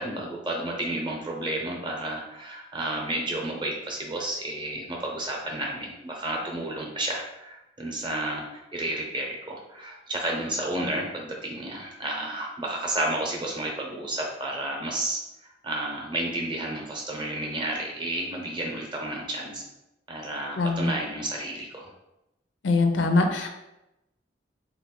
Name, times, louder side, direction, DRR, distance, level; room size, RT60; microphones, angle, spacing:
voice 1, 0.0-19.6 20.1-21.9, right 1 dB, 25° right, 0 dB, 0.6 m, -31 dB
voice 2, 20.6-20.9 22.6-23.5, left 3 dB, 85° left, 5 dB, 0.5 m, -22 dB
3.0 x 2.4 x 3.6 m, 0.91 s
head